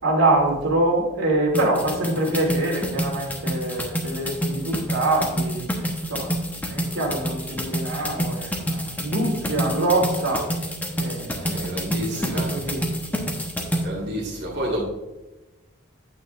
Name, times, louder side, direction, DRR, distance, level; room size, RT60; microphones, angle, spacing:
voice 1, 0.0-5.6 6.1-6.3 6.7-10.5 10.9-11.6 12.1-12.9, right 2 dB, 90° right, -2 dB, 2.8 m, -24 dB
sound 1, 1.5-13.8, equal, 10° left, 1.0 m, -27 dB
voice 2, 11.4-12.6 13.8-14.8, equal, 55° right, -5 dB, 1.9 m, -30 dB
9.1 x 9.0 x 2.5 m, 1.1 s
head